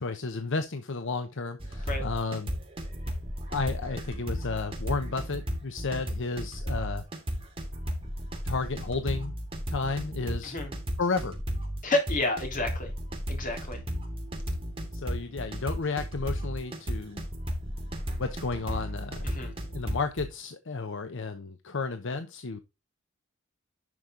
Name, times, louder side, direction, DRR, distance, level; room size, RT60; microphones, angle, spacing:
voice 1, 0.0-2.5 3.5-7.0 8.4-9.3 9.7-10.6 11.0-11.4 14.9-17.2 18.2-19.3 19.7-22.6, left 4 dB, 60° left, 0.9 m, -32 dB
sound 1, 1.6-20.3, equal, 25° right, 2.9 m, -34 dB
voice 2, 11.8-12.9 13.3-13.8 19.2-19.5, left 2 dB, 40° left, 3.3 m, -30 dB
11.0 x 5.4 x 3.8 m
head